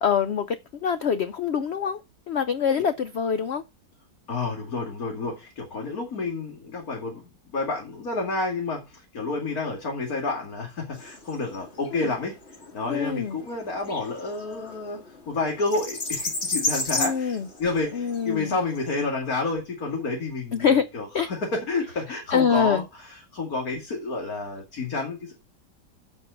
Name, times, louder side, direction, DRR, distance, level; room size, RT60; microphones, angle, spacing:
voice 1, 0.0-0.6 0.8-2.0 2.3-3.6 11.9-12.0 12.9-13.4 16.9-17.5 17.9-18.5 20.5-20.9 21.1-21.3 22.3-22.8, left 7 dB, 80° left, 0.5 m, -24 dB
voice 2, 4.3-7.2 7.5-12.3 12.7-15.0 15.3-16.2 16.5-25.3, left 3 dB, 55° left, 3.0 m, -30 dB
sound 1, 10.9-19.0, left 2 dB, 40° left, 2.1 m, -34 dB
8.1 x 5.4 x 6.9 m
omnidirectional pair, 1.8 m